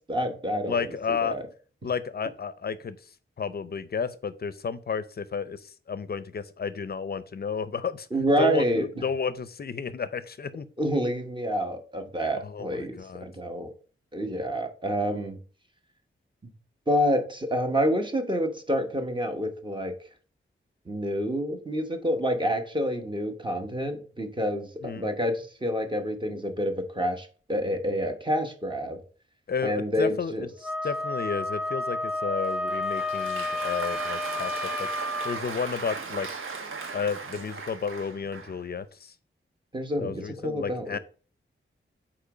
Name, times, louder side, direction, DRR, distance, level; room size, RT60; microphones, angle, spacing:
voice 1, 0.1-1.4 8.1-8.9 10.8-13.7 14.1-15.4 16.9-19.9 20.9-29.0 29.6-30.5 39.7-41.0, equal, 20° right, 4 dB, 1.0 m, -28 dB
voice 2, 0.7-1.4 1.8-3.0 3.4-8.1 8.4-10.7 12.4-13.3 24.8-25.1 29.5-30.5 30.8-34.9 35.2-36.3 36.9-39.1 40.0-41.0, left 6 dB, 50° left, 14 dB, 0.5 m, -32 dB
Wind instrument woodwind instrument, 30.6-35.4, left 2 dB, 5° right, 0.4 m, -31 dB
Applause, 32.4-38.6, right 4 dB, 70° right, 1.2 m, -37 dB
8.3 x 3.0 x 4.9 m, 0.40 s
wide cardioid pair, 130°, 21 cm